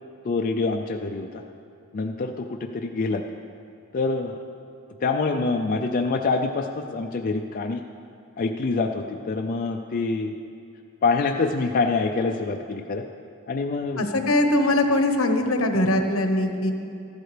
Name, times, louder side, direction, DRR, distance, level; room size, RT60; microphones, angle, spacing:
voice 1, 0.2-1.3 1.9-3.2 3.9-4.4 5.0-7.8 8.4-10.3 11.0-13.0 13.5-14.1, left 3 dB, 40° left, 3 dB, 0.4 m, -25 dB
voice 2, 14.0-16.7, left 1 dB, 75° left, 5 dB, 1.0 m, -21 dB
14.0 x 12.0 x 3.3 m, 2.6 s
head